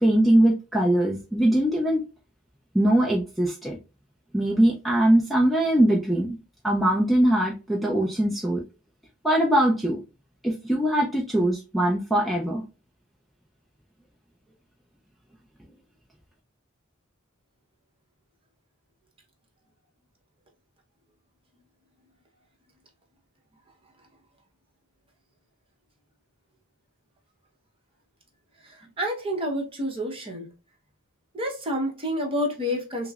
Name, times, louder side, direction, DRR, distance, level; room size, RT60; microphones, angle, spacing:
voice 1, 0.0-2.0 2.7-3.8 4.3-6.4 6.6-8.6 9.2-10.0 10.4-12.6, right 1 dB, ahead, 0.5 m, -21 dB
voice 2, 28.6-30.5 31.3-33.1, equal, 25° right, 0.9 m, -29 dB
5.9 x 2.0 x 2.4 m
head